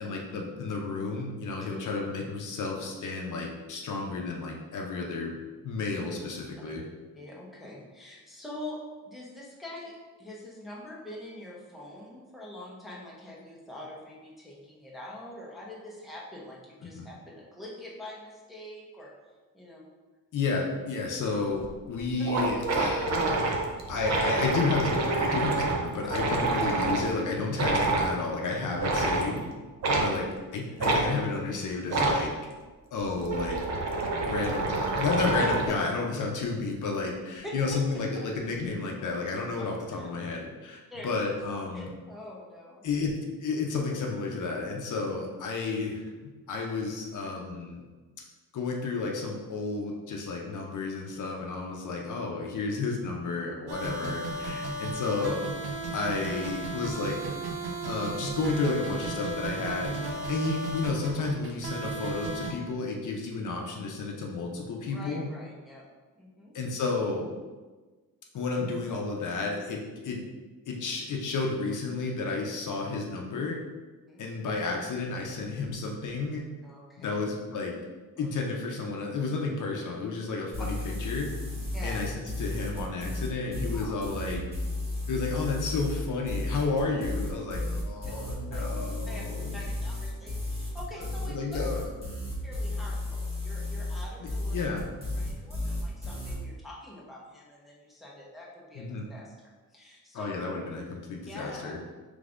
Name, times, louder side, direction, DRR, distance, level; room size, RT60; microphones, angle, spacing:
voice 1, 0.0-5.4 5.6-6.8 17.0-17.1 20.3-23.1 23.9-29.5 30.0-30.3 30.5-32.3 32.9-33.6 34.2-41.9 42.8-46.0 46.5-47.9 48.5-55.4 55.9-57.2 57.8-59.9 60.3-65.3 66.5-67.3 68.3-70.2 70.7-73.6 74.2-76.5 77.0-77.7 78.2-81.3 81.8-84.4 85.1-89.6 91.3-91.9 94.2-95.2 98.7-99.0 100.1-101.8, left 3 dB, 55° left, 0 dB, 0.6 m, -32 dB
voice 2, 7.2-19.1 19.5-19.8 37.4-37.5 40.0-40.1 40.9-41.2 41.7-42.8 53.8-53.9 64.9-65.9 66.2-66.6 74.1-74.2 76.6-77.1 78.2-78.3 81.7-82.0 83.7-84.0 88.5-88.6 89.1-89.2 89.5-91.6 92.4-94.6 95.1-99.3 99.7-100.3 101.3-101.7, left 1 dB, ahead, -5 dB, 0.7 m, -44 dB
sound 1, 21.6-21.7 22.0-22.1 22.3-27.1 27.5-28.1 28.8-29.3 29.8-30.1 30.8-31.0 31.9-32.2 33.0-35.7, right 2 dB, 45° right, 0.6 m, -27 dB
sound 2, 53.7-62.5, right 2 dB, 90° right, 0.9 m, -34 dB
sound 3, 80.5-96.4, left 2 dB, 15° right, 1.2 m, -33 dB
5.2 x 3.4 x 2.5 m, 1.3 s
wide cardioid pair, 170°, 36 cm